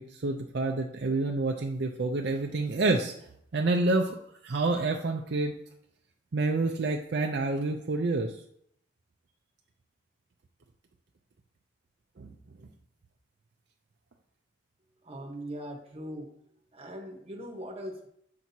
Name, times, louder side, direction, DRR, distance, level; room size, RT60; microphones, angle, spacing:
voice 1, 0.0-3.1 3.5-4.2 4.4-5.5 6.3-8.4 12.2-12.3, right 3 dB, 55° right, 2 dB, 0.5 m, -28 dB
voice 2, 15.0-16.3 16.7-18.1, equal, 30° right, 1 dB, 1.0 m, -40 dB
7.5 x 5.9 x 2.8 m, 0.71 s
head